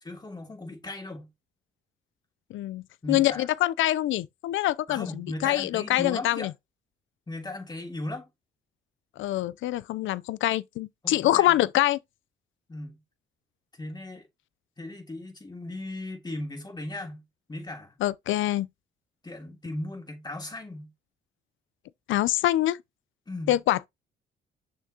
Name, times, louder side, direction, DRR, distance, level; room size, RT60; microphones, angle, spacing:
voice 1, 0.0-1.3 3.0-3.5 4.9-6.5 7.3-8.3 11.0-11.5 12.7-13.0 13.7-14.3 14.8-17.2 17.5-18.0 19.2-20.9 23.3-23.6, left 2 dB, 20° left, 2.9 m, -37 dB
voice 2, 2.5-6.5 9.2-12.0 18.0-18.7 22.1-22.8 23.5-23.9, left 14 dB, 75° left, 0.5 m, -25 dB
6.5 x 5.8 x 2.8 m
cardioid pair, 90°, 20 cm